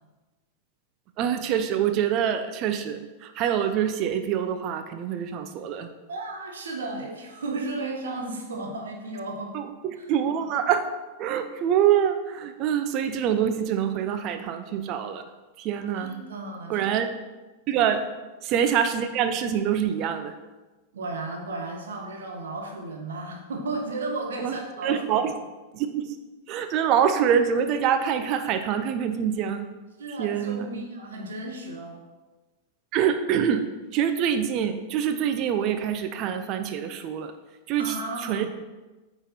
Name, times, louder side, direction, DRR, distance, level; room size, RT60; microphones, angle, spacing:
voice 1, 1.2-5.9 9.5-10.9 11.2-15.2 15.6-16.2 16.7-17.1 17.7-18.0 18.4-20.3 24.4-24.6 24.8-25.3 25.7-26.2 26.5-29.6 30.2-30.8 32.9-33.7 33.9-37.3 37.7-38.0 38.2-38.5, right 8 dB, 40° right, 9 dB, 0.7 m, -25 dB
voice 2, 6.1-9.6 16.0-16.9 17.8-18.0 20.9-25.3 30.0-32.0 37.8-38.5, right 2 dB, 65° right, 1 dB, 1.5 m, -34 dB
8.8 x 4.9 x 4.4 m, 1.2 s
figure-of-eight pair, 95°, 0 cm